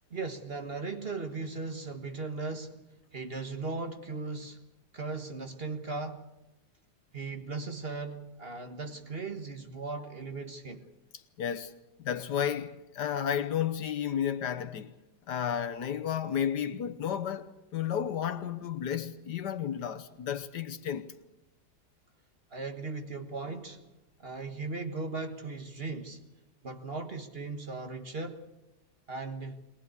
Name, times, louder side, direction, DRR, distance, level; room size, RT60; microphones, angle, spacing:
voice 1, 0.1-2.9 3.1-4.6 4.9-6.3 7.1-10.8 22.5-23.8 24.2-26.2 26.6-28.4 29.1-29.6, right 3 dB, 35° right, 1.6 m, -37 dB
voice 2, 11.4-11.7 12.0-14.9 15.3-21.1, left 9 dB, 70° left, 1.6 m, -32 dB
22.0 x 19.5 x 8.2 m
omnidirectional pair, 1.9 m